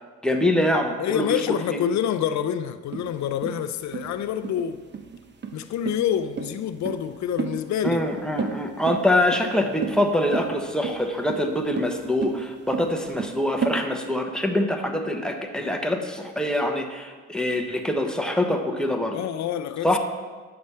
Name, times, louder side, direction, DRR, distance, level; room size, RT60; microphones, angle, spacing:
voice 1, 0.2-1.8 7.8-19.2 19.8-20.0, left 1 dB, 5° left, 0.9 m, -24 dB
voice 2, 1.0-4.8 5.5-8.0 19.1-19.9, left 9 dB, 65° left, 0.5 m, -27 dB
sound 1, 2.9-13.8, right 6 dB, 35° right, 0.7 m, -32 dB
9.4 x 6.9 x 3.3 m
cardioid pair, 90°, 30 cm